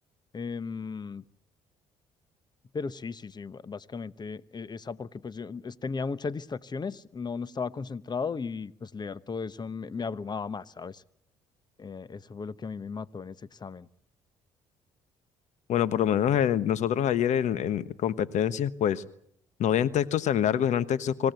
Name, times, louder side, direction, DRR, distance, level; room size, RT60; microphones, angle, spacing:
voice 1, 0.3-1.2 2.7-11.0 11.8-13.9, left 5 dB, 35° left, 17 dB, 1.1 m, -36 dB
voice 2, 15.7-19.0 19.6-21.3, left 10 dB, 65° left, 15 dB, 1.2 m, -25 dB
26.0 x 16.0 x 9.2 m, 0.70 s
supercardioid pair, 65°, 13 cm